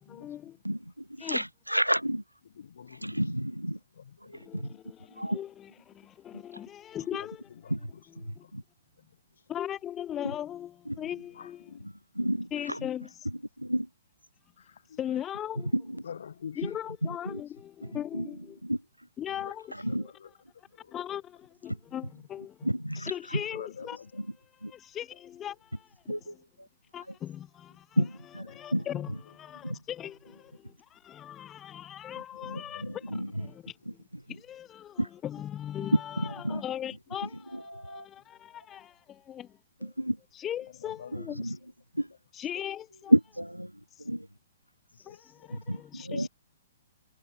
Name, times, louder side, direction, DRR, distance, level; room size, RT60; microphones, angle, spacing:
voice 1, 0.1-0.6 1.2-1.4 4.3-7.4 8.2-8.4 9.5-11.7 12.5-13.3 15.0-15.7 16.6-18.6 19.2-19.7 20.9-22.7 22.9-24.0 24.5-26.4 26.9-28.0 28.5-34.0 34.3-39.9 40.3-41.6 42.3-43.1 43.9-44.1 45.1-46.3, left 11 dB, 20° left, 0.3 m, -39 dB
voice 2, 0.6-2.2 3.0-3.8 4.3-4.7 5.2-5.4 7.7-7.9 8.2-8.6 10.9-11.0 12.2-12.9 13.6-13.9 15.7-16.0 16.6-16.7 17.0-17.4 17.8-18.3 18.6-18.8 19.8-20.0 22.6-23.1 24.2-24.3 24.6-24.7 26.1-26.3 28.0-28.5 28.7-28.9 29.6-29.8 32.5-33.5 35.0-35.1 36.2-36.6 37.5-38.1 39.8-40.2 41.1-41.6 41.9-42.1 43.1-43.7 44.0-44.3 45.7-46.3, equal, 90° right, 0.7 m, -30 dB
voice 3, 2.4-3.2 4.0-4.4 7.2-7.3 7.6-8.0 8.4-8.5 11.3-11.9 12.2-12.3 14.6-15.0 16.0-16.8 19.3-19.5 19.9-20.3 20.7-20.9 23.5-24.2 28.5-28.8 32.3-33.0 36.5-36.6 40.8-41.4 44.9-45.5, left 7 dB, 60° left, 2.5 m, -47 dB
figure-of-eight pair, 115°, 0 cm